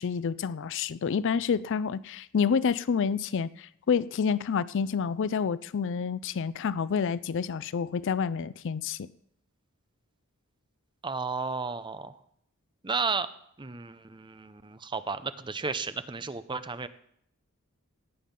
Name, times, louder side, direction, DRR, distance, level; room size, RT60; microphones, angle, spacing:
voice 1, 0.0-9.1, left 6 dB, 55° left, 0.4 m, -28 dB
voice 2, 11.0-12.2 12.8-13.3 13.6-16.9, right 4 dB, 20° right, 0.6 m, -33 dB
17.5 x 9.2 x 5.4 m
head